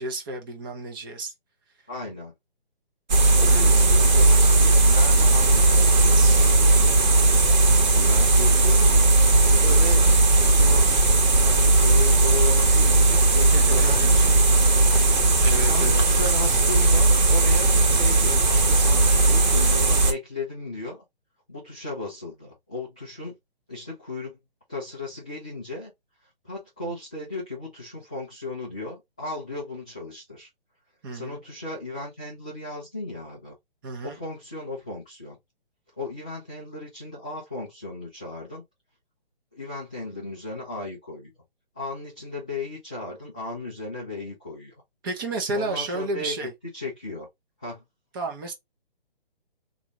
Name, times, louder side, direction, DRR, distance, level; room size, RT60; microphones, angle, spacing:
voice 1, 0.0-1.3 3.4-3.9 13.5-14.1 15.4-16.0 31.0-31.4 33.8-34.2 45.0-46.5 48.1-48.5, right 2 dB, 20° right, 0.8 m, -32 dB
voice 2, 1.9-2.3 3.4-7.4 7.9-9.1 9.5-11.0 11.4-14.4 15.6-21.0 21.5-23.4 23.7-24.4 24.7-25.9 26.4-30.5 31.1-33.5 34.0-35.4 36.0-38.6 39.5-41.3 41.7-44.7 45.5-47.3 47.6-47.8, left 2 dB, 5° left, 0.4 m, -35 dB
sound 1, 3.1-20.1, right 2 dB, 45° right, 1.3 m, -17 dB
3.8 x 2.6 x 3.0 m
hypercardioid pair, 155°, 30 cm